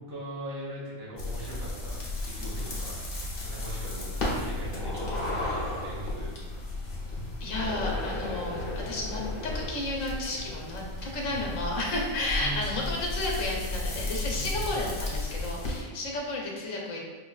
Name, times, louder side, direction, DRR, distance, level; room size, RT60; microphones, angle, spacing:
voice 1, 0.1-3.0 3.4-6.3 12.3-12.6 14.3-14.9, right 1 dB, 85° right, -6 dB, 1.5 m, -40 dB
sound 1, 1.2-15.8, left 2 dB, 50° left, 1.0 m, -34 dB
voice 2, 7.4-17.0, left 2 dB, 75° left, -2 dB, 1.1 m, -32 dB
4.9 x 2.6 x 2.3 m, 1.4 s
omnidirectional pair, 1.4 m